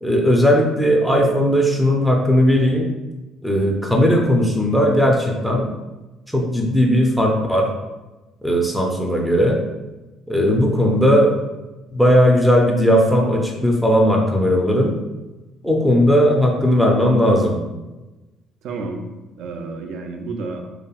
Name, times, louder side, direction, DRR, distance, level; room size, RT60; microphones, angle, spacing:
voice 1, 0.0-2.9 3.4-5.7 6.3-7.7 8.4-9.6 10.3-11.4 11.9-15.0 15.6-17.6, equal, 5° right, 0 dB, 0.5 m, -17 dB
voice 2, 18.6-19.1 19.4-20.7, right 3 dB, 70° right, 4 dB, 0.4 m, -30 dB
2.8 x 2.4 x 2.3 m, 1.1 s
supercardioid pair, 75°, 0 cm